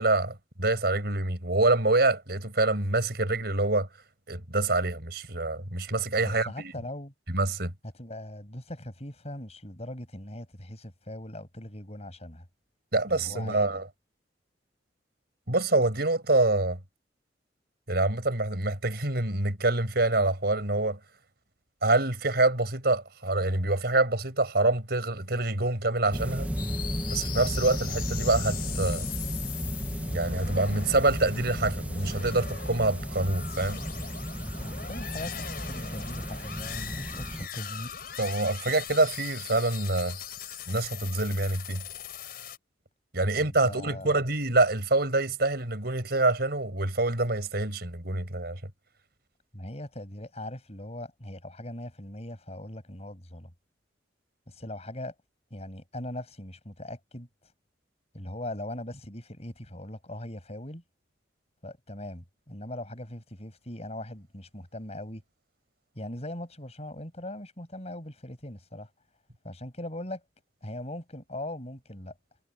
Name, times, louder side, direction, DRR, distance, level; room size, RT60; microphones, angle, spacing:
voice 1, 0.0-3.9 4.3-6.7 7.3-7.7 12.9-13.9 15.5-16.8 17.9-21.0 21.8-26.5 27.1-29.0 30.1-33.8 38.2-40.2 40.7-41.8 43.1-48.6, right 2 dB, 60° right, 5.8 m, -26 dB
voice 2, 6.2-7.1 7.8-12.5 13.1-13.7 34.6-37.9 43.3-44.2 49.5-53.5 54.5-55.1 55.5-57.5 58.1-60.8 61.6-65.2 66.0-68.9 69.4-70.2 70.6-72.1, left 1 dB, 35° left, 7.2 m, -40 dB
sound 1, 26.1-37.5, equal, 10° right, 1.8 m, -34 dB
sound 2, 26.6-42.6, left 6 dB, 55° left, 4.9 m, -39 dB
head